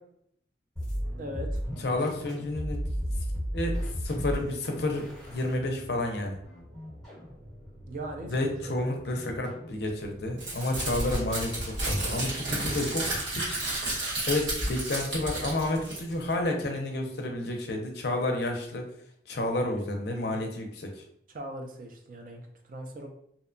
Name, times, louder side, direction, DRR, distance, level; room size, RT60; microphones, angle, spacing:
sound 1, 0.8-10.5, equal, 5° left, 1.0 m, -36 dB
voice 1, 1.2-1.6 7.9-8.9 20.3-20.4 21.3-23.1, right 1 dB, 45° right, 3 dB, 0.4 m, -40 dB
voice 2, 1.8-2.8 3.5-6.4 8.3-13.6 14.0-18.8 19.3-20.9, left 2 dB, 60° left, 3 dB, 0.5 m, -30 dB
Crumpling crinkling, 10.4-16.3, right 1 dB, 80° right, 1.1 m, -31 dB
2.7 x 2.1 x 2.5 m, 0.69 s
head